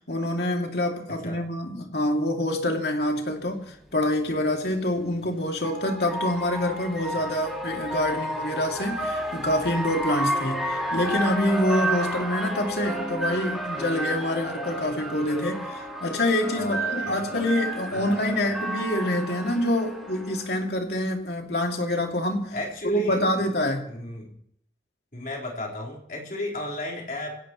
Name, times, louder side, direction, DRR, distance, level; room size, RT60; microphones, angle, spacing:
voice 1, 0.1-22.6 22.8-24.0, left 1 dB, 70° left, 2.5 m, -26 dB
voice 2, 1.1-1.4 16.5-17.5 17.9-18.6 22.5-23.4 23.9-24.4 25.1-27.4, left 1 dB, 50° left, 4.2 m, -34 dB
sound 1, 3.4-3.5 5.0-20.6, right 1 dB, ahead, 2.5 m, -31 dB
26.0 x 16.5 x 3.1 m
head